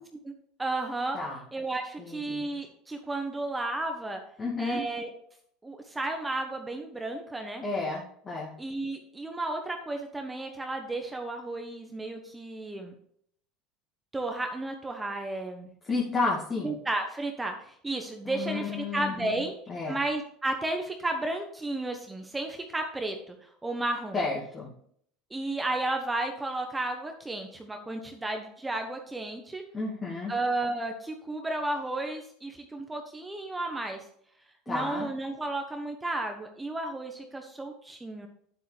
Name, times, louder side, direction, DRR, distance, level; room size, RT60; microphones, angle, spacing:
voice 1, 0.6-1.2 1.5-4.2 4.6-5.1 5.6-7.6 8.6-12.9 14.1-15.7 16.6-19.5 19.9-24.2 25.3-29.6 30.3-34.0 34.7-38.3, right 2 dB, 10° right, 4 dB, 1.1 m, -33 dB
voice 2, 2.0-2.4 4.4-4.8 7.6-8.5 15.8-16.7 18.2-19.4 19.7-20.0 24.1-24.7 29.7-30.3 34.7-35.1, left 3 dB, 30° left, -4 dB, 2.3 m, -31 dB
9.3 x 7.8 x 3.4 m, 0.65 s
supercardioid pair, 105°, 0 cm